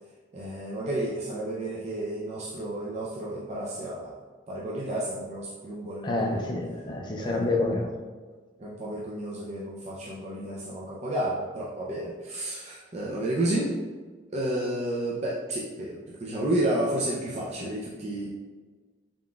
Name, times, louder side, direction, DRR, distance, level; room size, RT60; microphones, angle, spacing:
voice 1, 0.3-4.1 4.5-6.5 7.1-7.5 8.6-13.7 14.3-18.3, right 1 dB, 35° right, -5 dB, 0.4 m, -31 dB
voice 2, 6.0-7.9, left 2 dB, 25° left, 0 dB, 0.4 m, -28 dB
3.8 x 3.7 x 2.3 m, 1.4 s
head